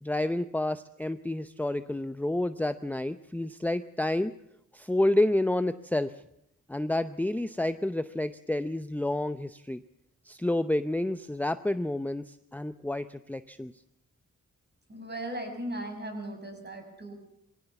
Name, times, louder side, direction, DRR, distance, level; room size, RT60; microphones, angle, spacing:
voice 1, 0.0-4.3 4.7-6.1 6.7-9.8 10.3-13.7, left 1 dB, 5° left, 12 dB, 0.7 m, -29 dB
voice 2, 14.9-17.1, right 1 dB, 30° right, 4 dB, 6.7 m, -37 dB
22.0 x 16.5 x 7.1 m, 0.79 s
cardioid pair, 75°, 32 cm